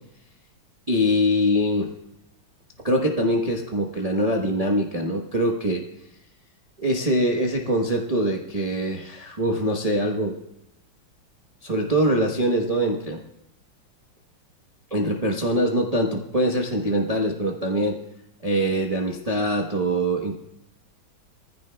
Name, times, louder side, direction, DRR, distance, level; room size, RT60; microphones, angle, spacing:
voice 1, 0.9-1.9 2.8-5.8 6.8-10.4 11.6-13.2 14.9-18.0 18.4-20.4, equal, 30° right, 0 dB, 0.8 m, -23 dB
20.5 x 15.0 x 2.3 m, 0.82 s
omnidirectional pair, 2.2 m